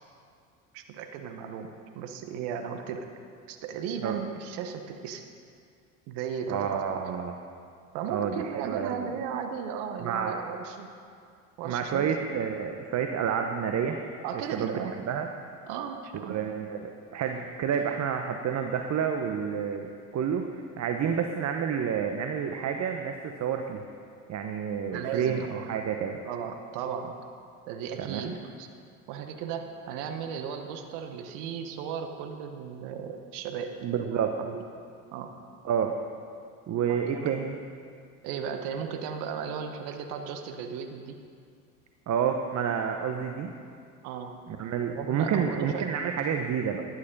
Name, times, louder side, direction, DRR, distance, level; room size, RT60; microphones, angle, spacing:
voice 1, 0.7-3.1 3.5-5.2 6.1-7.1 7.9-10.9 11.6-12.1 14.2-14.9 15.7-16.4 24.9-25.7 26.2-27.1 27.7-28.7 29.1-34.0 34.4-34.6 35.1-35.3 36.9-37.3 38.2-41.2 44.0-44.4 44.9-45.9, right 7 dB, 65° right, 6 dB, 1.2 m, -36 dB
voice 2, 6.5-7.4 8.1-9.1 10.0-10.4 11.6-14.0 14.5-14.8 15.1-15.3 16.2-23.8 24.3-26.2 28.0-28.4 33.8-34.3 35.6-35.9 36.7-37.6 42.1-43.5 44.5-46.8, right 7 dB, 40° right, 5 dB, 0.9 m, -29 dB
11.5 x 9.5 x 5.3 m, 2.3 s
hypercardioid pair, 80°, 42 cm